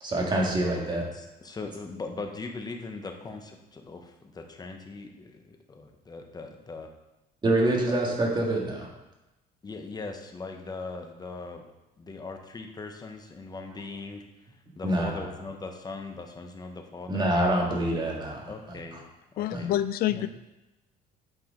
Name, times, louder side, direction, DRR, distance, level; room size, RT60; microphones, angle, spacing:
voice 1, 0.0-1.1 7.4-8.9 14.8-15.3 17.1-19.0 19.5-19.6, right 1 dB, 25° right, -1 dB, 1.9 m, -26 dB
voice 2, 1.1-6.9 7.9-8.0 9.6-11.7 12.0-14.2 14.8-17.3 18.5-19.0 19.3-19.7 20.2-20.3, left 3 dB, 25° left, 4 dB, 1.0 m, -40 dB
voice 3, 19.4-20.3, left 13 dB, 65° left, 14 dB, 0.4 m, -27 dB
8.9 x 4.8 x 3.8 m, 0.99 s
cardioid pair, 110°, 17 cm